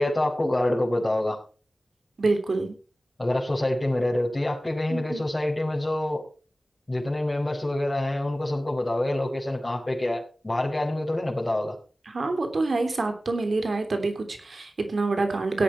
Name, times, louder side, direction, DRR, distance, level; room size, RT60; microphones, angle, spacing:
voice 1, 0.0-1.4 3.2-6.2 6.9-11.8, left 1 dB, 35° left, -6 dB, 4.9 m, -26 dB
voice 2, 2.2-2.8 4.9-5.2 12.1-15.6, right 3 dB, 70° right, 6 dB, 3.1 m, -26 dB
17.0 x 8.8 x 4.6 m, 0.37 s
cardioid pair, 40°, 0 cm